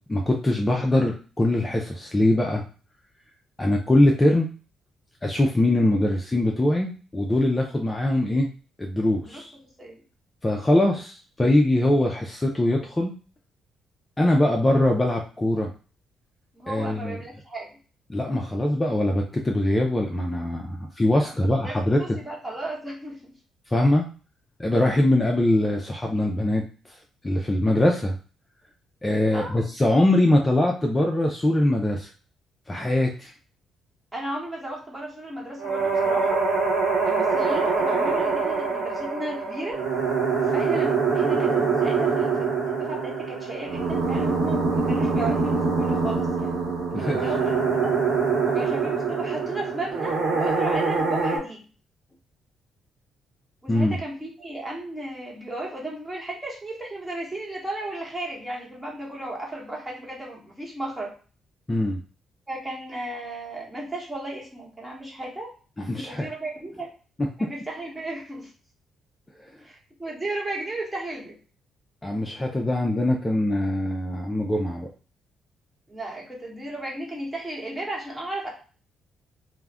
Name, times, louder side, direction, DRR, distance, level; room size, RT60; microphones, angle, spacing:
voice 1, 0.1-2.6 3.6-4.5 5.2-8.5 8.8-9.5 10.4-13.1 14.2-15.7 16.7-17.2 18.1-22.2 23.7-24.1 24.6-26.6 27.2-28.2 29.0-32.1 32.7-33.3 46.9-47.3 53.7-54.0 61.7-62.0 65.8-66.3 67.2-67.5 72.0-74.9, left 1 dB, 20° left, 1 dB, 0.4 m, -22 dB
voice 2, 9.2-10.0 16.5-17.7 21.2-23.3 29.3-29.7 34.1-36.5 37.0-39.8 40.5-47.9 48.4-51.6 53.6-61.1 62.5-65.5 66.1-66.9 67.4-68.5 69.6-71.4 75.9-78.5, right 1 dB, 15° right, -2 dB, 1.1 m, -35 dB
sound 1, 35.6-51.4, right 4 dB, 60° right, 0.9 m, -24 dB
2.3 x 2.1 x 3.4 m, 0.37 s
cardioid pair, 90°, 0 cm